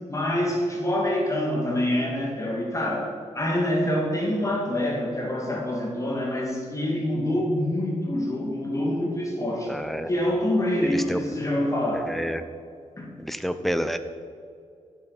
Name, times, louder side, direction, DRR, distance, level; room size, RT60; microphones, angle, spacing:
voice 1, 0.1-9.7 10.1-12.1 13.0-13.1, left 1 dB, 25° left, -2 dB, 2.3 m, -26 dB
voice 2, 9.7-10.1 10.8-11.2 11.9-12.4 13.2-14.0, equal, ahead, 10 dB, 0.6 m, -29 dB
11.5 x 7.5 x 5.0 m, 2.3 s
wide cardioid pair, 110°, 12 cm